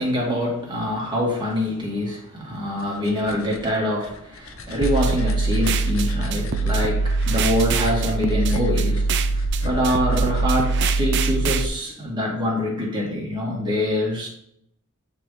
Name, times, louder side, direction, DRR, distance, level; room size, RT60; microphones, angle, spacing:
voice 1, 0.0-14.3, left 1 dB, 20° right, 2.1 m, -25 dB
sound 1, 2.5-11.5, left 2 dB, 85° left, 0.8 m, -38 dB
sound 2, 4.8-11.7, right 3 dB, 55° right, 0.5 m, -22 dB
9.3 x 4.0 x 3.3 m
head